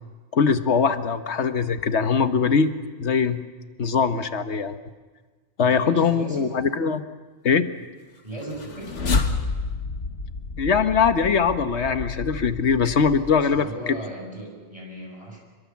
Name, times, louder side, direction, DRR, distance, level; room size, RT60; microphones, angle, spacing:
voice 1, 0.3-2.7 3.0-3.4 3.8-4.8 5.6-7.0 7.4-7.7 10.6-14.0, left 5 dB, 75° left, 10 dB, 1.4 m, -21 dB
voice 2, 5.6-6.5 8.2-9.0 13.5-15.4, right 1 dB, 30° right, -1 dB, 6.9 m, -36 dB
sound 1, 8.4-13.7, left 4 dB, 90° left, 1.9 m, -30 dB
26.5 x 23.0 x 7.2 m, 1.4 s
omnidirectional pair, 1.2 m